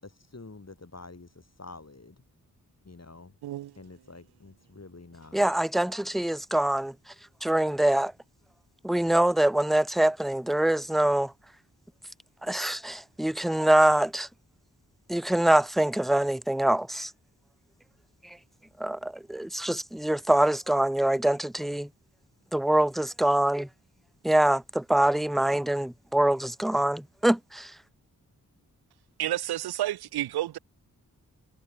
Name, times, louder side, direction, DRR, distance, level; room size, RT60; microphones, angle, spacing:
voice 1, 0.0-2.2 2.8-3.4 3.8-5.5, left 3 dB, 40° left, 6.5 m, -48 dB
voice 2, 3.4-3.7 29.2-30.6, right 13 dB, 85° right, 0.5 m, -30 dB
voice 3, 5.3-6.9 7.4-8.1 8.8-11.3 12.4-14.3 15.1-17.1 18.8-21.9 22.5-23.7 24.2-27.7, right 1 dB, ahead, 0.4 m, -24 dB
cardioid pair, 40°, 38 cm